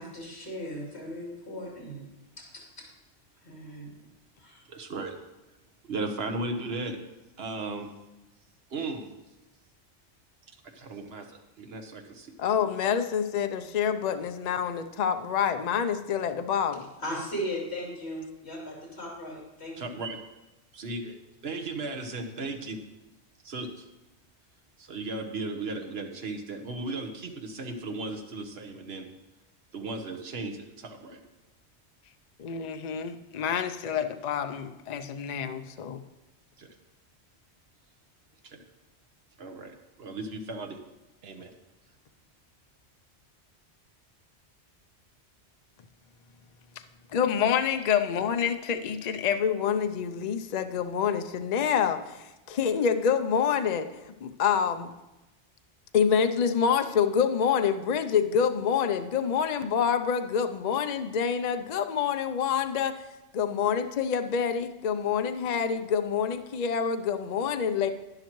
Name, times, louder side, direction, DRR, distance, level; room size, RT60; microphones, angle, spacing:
voice 1, 0.0-2.0 2.8-2.9 3.4-3.9 4.4-4.6 17.0-19.9, equal, 70° left, -3 dB, 3.4 m, -37 dB
voice 2, 4.7-5.2 5.8-7.0 7.4-7.9 8.7-9.1 10.7-11.2 11.6-12.3 19.8-20.2 20.7-21.1 21.4-22.8 23.4-23.8 24.8-29.1 29.7-31.2 36.6-36.7 38.4-38.6 39.4-40.8 41.2-41.5, right 2 dB, 65° right, 4 dB, 1.3 m, -36 dB
voice 3, 12.4-16.9 32.4-36.0 47.1-54.9 55.9-63.1 63.3-67.9, left 7 dB, 50° left, 8 dB, 0.6 m, -27 dB
11.5 x 10.5 x 3.1 m, 1.0 s
omnidirectional pair, 1.1 m